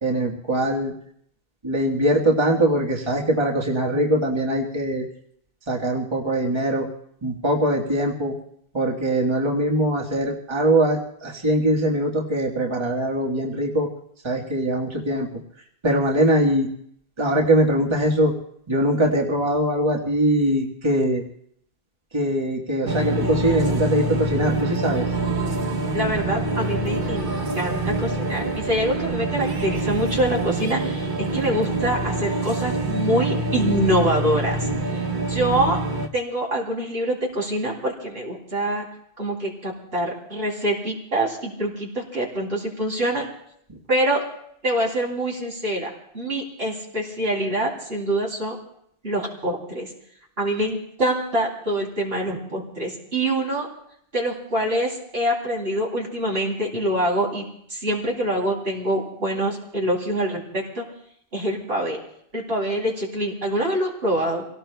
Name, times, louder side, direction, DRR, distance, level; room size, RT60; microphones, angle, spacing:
voice 1, 0.0-0.9 1.6-5.0 5.7-6.9 7.2-8.3 8.7-13.9 14.2-15.3 15.8-16.7 17.2-18.3 18.7-21.2 22.1-25.0, right 1 dB, 25° right, -1 dB, 1.5 m, -22 dB
sound 1, 22.9-36.1, right 2 dB, 50° right, 1.1 m, -25 dB
voice 2, 25.9-34.7 35.3-35.8 36.1-38.8 39.2-43.3 43.9-44.2 44.6-45.9 46.1-48.6 49.0-49.9 50.4-53.7 54.1-57.4 57.7-60.8 61.3-62.0 62.3-64.5, right 1 dB, 70° right, -2 dB, 3.3 m, -25 dB
28.5 x 17.5 x 2.3 m, 0.68 s
omnidirectional pair, 1.1 m